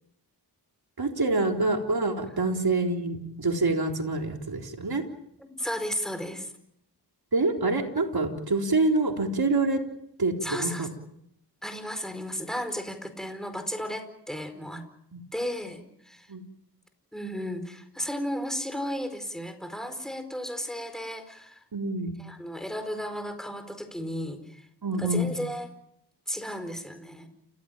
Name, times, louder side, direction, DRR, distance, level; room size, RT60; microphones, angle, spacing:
voice 1, 1.0-5.0 7.3-9.8 10.2-10.9 15.1-15.2 16.3-16.4 21.7-22.1 24.8-25.3, right 2 dB, 60° right, 3 dB, 3.9 m, -26 dB
voice 2, 5.4-6.5 10.4-10.9 11.6-14.8 15.3-16.3 17.1-21.6 22.2-24.7 25.0-25.7 26.3-27.3, equal, ahead, 8 dB, 4.8 m, -34 dB
29.5 x 16.0 x 9.1 m, 0.76 s
wide cardioid pair, 65°, 41 cm